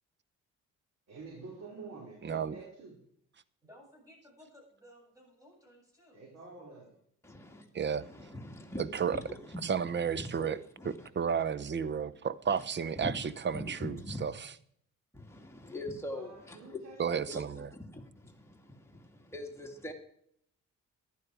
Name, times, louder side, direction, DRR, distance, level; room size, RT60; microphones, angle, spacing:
voice 1, 1.1-3.0 6.1-7.0 16.1-17.7, right 3 dB, 60° right, 4.9 m, -49 dB
voice 2, 3.6-6.3, equal, 10° right, 7.8 m, -58 dB
voice 3, 7.2-7.7 7.9-11.1 12.5-12.6 13.0-14.2 15.1-16.8 17.3-19.9, left 1 dB, 10° left, 2.6 m, -43 dB
voice 4, 7.7-8.1 8.9-9.2 9.6-10.6 11.1-13.9 14.2-14.3 17.0-17.7, right 7 dB, 35° right, 0.8 m, -32 dB
14.0 x 11.5 x 4.8 m
cardioid pair, 90°, 30 cm